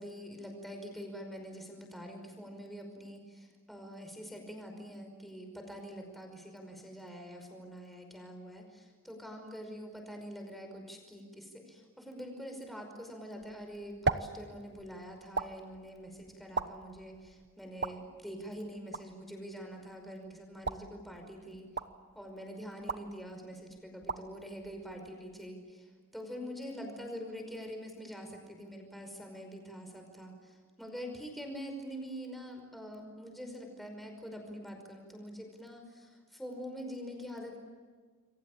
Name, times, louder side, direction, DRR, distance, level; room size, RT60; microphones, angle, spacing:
voice 1, 0.0-21.7 22.2-37.6, equal, ahead, 3 dB, 5.3 m, -45 dB
sound 1, 13.4-25.6, right 4 dB, 50° right, 1.1 m, -41 dB
28.5 x 23.5 x 8.7 m, 1.5 s
head